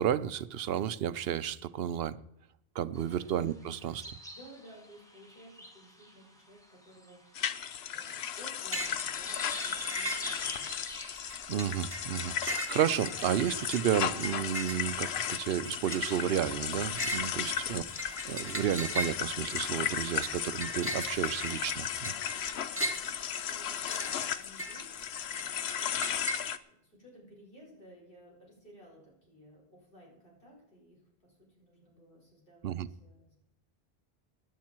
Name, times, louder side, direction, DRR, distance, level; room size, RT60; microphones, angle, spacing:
voice 1, 0.0-2.2 2.8-4.0 11.5-22.1 32.6-32.9, right 10 dB, 70° right, 0.8 m, -32 dB
sound 1, 2.9-12.7, equal, 5° left, 2.0 m, -47 dB
voice 2, 4.3-7.6 7.9-10.7 17.3-17.6 22.8-26.4 26.7-33.3, equal, 60° left, 5.6 m, -56 dB
sound 2, 7.4-26.6, left 9 dB, 80° left, 0.9 m, -35 dB
sound 3, 8.7-9.1 9.3-10.7 11.1-26.4, equal, 15° right, 1.2 m, -39 dB
17.0 x 10.5 x 4.5 m
omnidirectional pair, 1.0 m